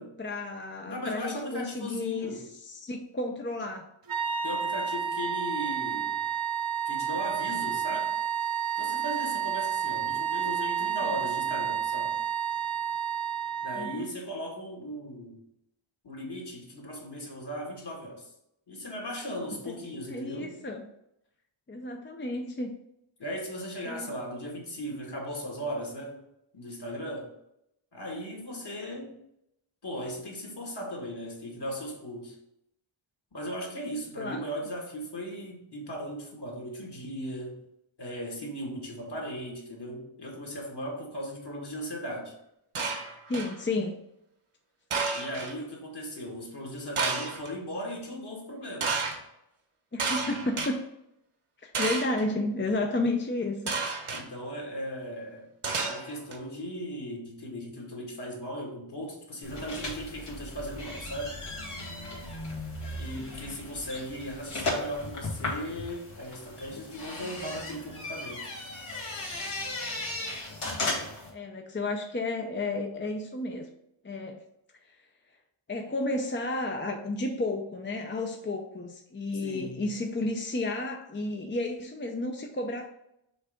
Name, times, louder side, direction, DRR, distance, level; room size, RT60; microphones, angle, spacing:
voice 1, 0.2-3.9 11.0-11.2 13.7-14.1 19.7-20.9 21.7-22.7 23.9-24.1 34.2-34.4 43.3-44.0 49.9-50.8 51.6-53.7 71.3-73.7 74.0-74.4 74.8-75.0 75.7-82.9, left 2 dB, 25° left, 3 dB, 0.5 m, -32 dB
voice 2, 0.8-2.4 4.4-6.3 6.9-8.1 8.8-12.2 13.6-15.4 16.0-18.3 18.7-20.6 23.2-26.2 26.5-27.3 27.9-29.1 29.8-32.4 33.3-37.6 38.0-42.3 45.1-49.0 54.1-55.5 55.8-61.4 63.0-68.5 79.4-79.9, equal, 50° left, 0 dB, 1.9 m, -37 dB
sound 1, 4.1-14.1, right 8 dB, 45° right, 0.6 m, -30 dB
sound 2, 42.8-43.6 44.9-45.5 47.0-47.5 48.8-49.2 50.0-50.7 51.7-52.2 53.7-54.2 55.6-56.4, right 4 dB, 75° right, 1.3 m, -31 dB
sound 3, 59.4-71.3, left 2 dB, 85° left, 2.1 m, -36 dB
6.3 x 3.3 x 5.0 m, 0.81 s
wide cardioid pair, 100°, 50 cm